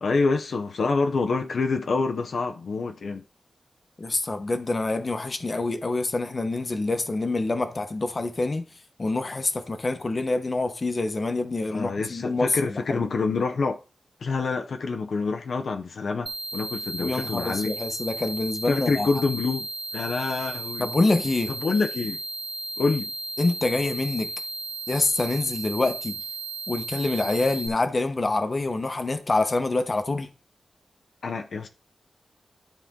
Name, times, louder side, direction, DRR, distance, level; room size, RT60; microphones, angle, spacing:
voice 1, 0.0-3.2 11.7-13.8 14.2-17.7 18.7-19.7 19.9-20.9 21.6-22.2 22.8-23.1 31.2-31.7, left 4 dB, 75° left, 0.7 m, -26 dB
voice 2, 4.0-8.6 9.0-13.1 17.0-19.1 20.8-21.5 23.4-24.3 24.9-26.1 26.7-30.3, left 2 dB, 35° left, 1.0 m, -26 dB
sound 1, 16.3-27.7, right 2 dB, 40° right, 0.7 m, -35 dB
11.5 x 4.3 x 3.7 m
wide cardioid pair, 110°, 0 cm